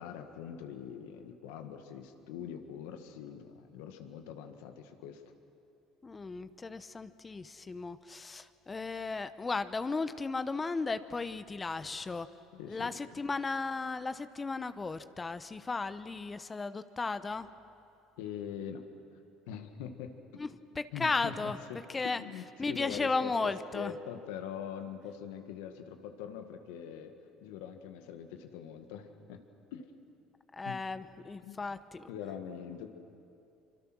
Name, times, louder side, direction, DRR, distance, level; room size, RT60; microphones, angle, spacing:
voice 1, 0.0-5.2 12.5-13.0 18.2-18.8 19.5-20.5 20.9-27.1 27.4-29.4 29.7-29.9 30.6-30.8 31.4-31.6 32.1-32.9, left 8 dB, 80° left, 7 dB, 1.8 m, -43 dB
voice 2, 6.0-12.3 12.7-17.5 20.4-20.5 20.8-21.6 21.9-22.2 22.6-23.9 30.5-32.1, left 3 dB, 25° left, 12 dB, 0.9 m, -35 dB
25.0 x 24.5 x 6.2 m, 2.6 s
supercardioid pair, 80°, 0 cm